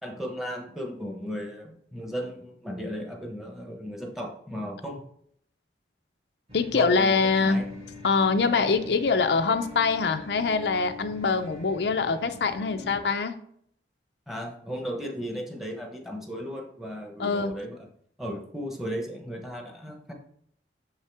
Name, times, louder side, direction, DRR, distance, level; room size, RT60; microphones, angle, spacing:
voice 1, 0.0-5.0 6.7-7.7 14.3-17.9 18.2-20.1, equal, ahead, 2 dB, 1.0 m, -35 dB
voice 2, 6.5-7.6 8.0-13.4 17.2-17.5, left 4 dB, 75° left, 8 dB, 0.5 m, -24 dB
sound 1, 6.5-13.0, left 3 dB, 35° right, 1.9 m, -44 dB
6.7 x 5.6 x 3.4 m, 0.67 s
head